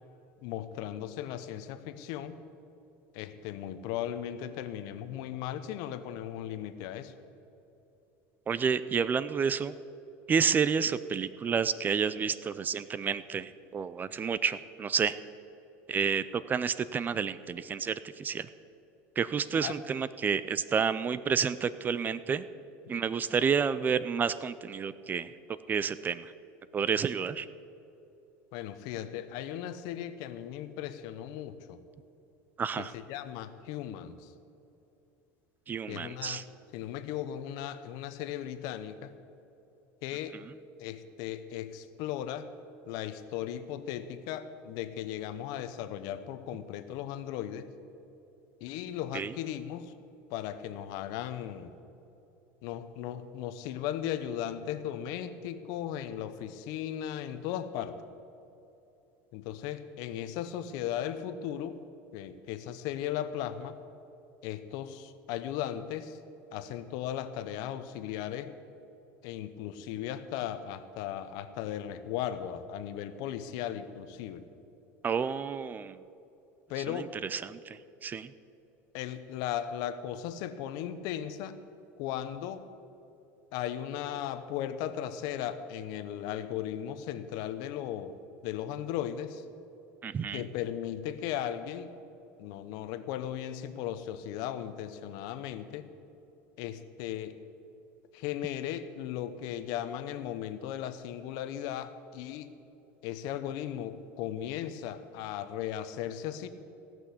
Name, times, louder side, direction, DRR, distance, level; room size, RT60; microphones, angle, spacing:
voice 1, 0.4-2.4 3.1-7.1 19.6-19.8 28.5-31.8 32.8-34.3 35.9-36.4 36.7-39.1 40.0-40.4 40.8-42.5 42.8-47.7 48.6-49.9 50.3-51.7 52.6-58.0 59.3-61.8 62.1-63.8 64.4-66.2 66.5-68.5 69.2-74.4 76.7-77.2 78.9-81.6 82.0-82.7 83.5-88.1 88.4-89.4 90.3-91.9 92.4-95.9 96.6-97.4 98.1-102.5 103.0-106.5, left 10 dB, 65° left, 11 dB, 0.8 m, -37 dB
voice 2, 8.5-9.7 10.3-15.1 15.9-18.5 19.2-22.4 22.9-26.3 26.7-27.5 32.6-32.9 35.7-36.4 49.1-49.3 75.0-76.0 76.9-77.0 77.3-78.3 90.0-90.4, right 6 dB, 25° right, 16 dB, 0.4 m, -30 dB
16.5 x 6.2 x 8.3 m, 2.9 s
supercardioid pair, 120°, 7 cm